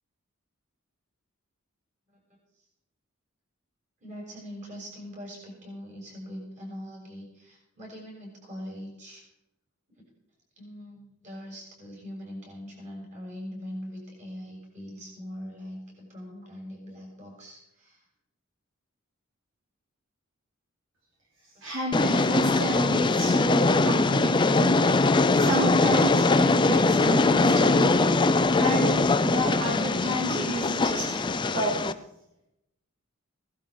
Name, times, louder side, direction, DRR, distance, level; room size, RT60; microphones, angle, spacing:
voice 1, 4.0-9.2 10.0-10.1 10.6-18.0, equal, 35° right, -1 dB, 6.5 m, -42 dB
voice 2, 21.6-24.8 25.3-28.0 28.5-31.3 31.5-31.8, right 1 dB, 65° right, -3 dB, 3.3 m, -31 dB
Train, 21.9-31.9, left 3 dB, 20° left, 0.5 m, -22 dB
17.0 x 12.0 x 4.8 m, 0.83 s
head